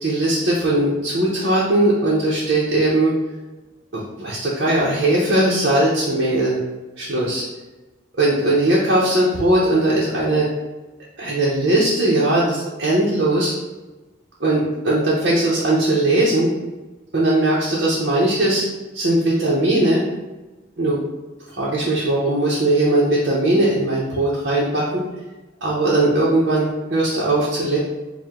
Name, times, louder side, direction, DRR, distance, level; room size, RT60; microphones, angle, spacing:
voice 1, 0.0-3.1 3.9-6.6 7.0-7.4 8.2-10.5 11.2-13.5 14.4-16.5 17.1-18.6 18.9-20.0 20.8-21.0 21.6-25.0 25.6-27.8, right 1 dB, 55° right, -6 dB, 0.7 m, -19 dB
4.5 x 2.2 x 3.6 m, 1.1 s
head